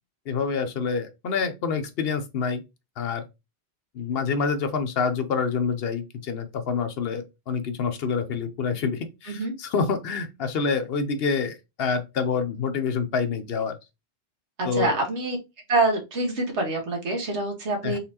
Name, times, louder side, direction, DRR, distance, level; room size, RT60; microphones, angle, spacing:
voice 1, 0.3-2.6 3.0-3.2 3.9-13.8 14.7-15.0 17.8-18.0, left 5 dB, 65° left, 0.9 m, -27 dB
voice 2, 14.6-15.4 15.7-18.0, right 2 dB, 90° right, 1.5 m, -25 dB
4.1 x 3.6 x 2.8 m
omnidirectional pair, 1.1 m